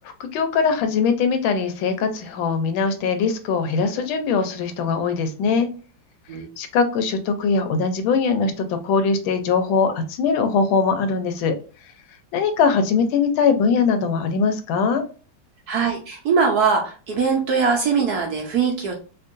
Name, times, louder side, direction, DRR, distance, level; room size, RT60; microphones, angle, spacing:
voice 1, 0.2-5.7 6.6-11.5 12.3-15.0, left 5 dB, 80° left, 8 dB, 1.4 m, -21 dB
voice 2, 15.7-18.9, right 5 dB, 65° right, 1 dB, 1.0 m, -21 dB
4.5 x 2.5 x 2.5 m, 0.36 s
omnidirectional pair, 2.2 m